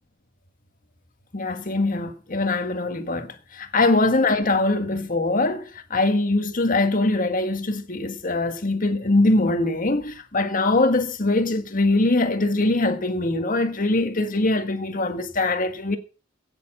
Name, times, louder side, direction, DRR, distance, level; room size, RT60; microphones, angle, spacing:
voice 1, 1.3-16.0, left 2 dB, 40° left, 1.6 m, -22 dB
17.0 x 7.0 x 6.1 m
head